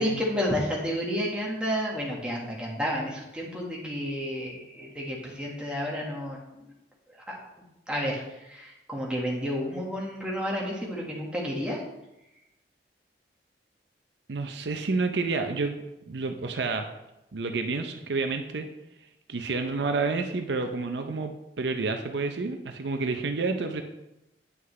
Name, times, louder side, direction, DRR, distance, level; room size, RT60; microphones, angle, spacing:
voice 1, 0.0-6.6 7.3-7.4 7.9-11.8, equal, 5° right, -3 dB, 1.4 m, -31 dB
voice 2, 14.3-16.9 17.3-18.7 19.3-23.8, right 3 dB, 75° right, 6 dB, 0.6 m, -29 dB
9.4 x 5.8 x 3.2 m, 0.92 s
head